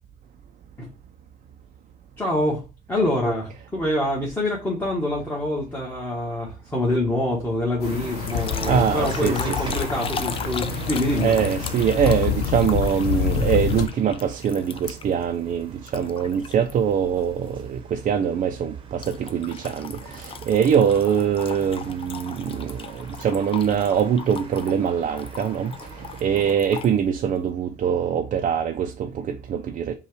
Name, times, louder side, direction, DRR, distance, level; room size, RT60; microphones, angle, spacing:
voice 1, 2.2-2.6 2.9-11.3, left 1 dB, 15° left, 1.3 m, -25 dB
sound 1, 7.8-13.9, left 7 dB, 70° left, 0.7 m, -27 dB
sound 2, 7.8-26.6, right 5 dB, 30° right, 0.9 m, -43 dB
sound 3, 8.3-15.2 15.9-16.7 17.2-17.5 19.0-26.9, left 7 dB, 35° left, 0.4 m, -38 dB
voice 2, 8.6-9.8 10.7-10.9 11.1-29.9, right 8 dB, 50° right, 0.5 m, -23 dB
5.4 x 2.3 x 3.2 m
cardioid pair, 110°, 17 cm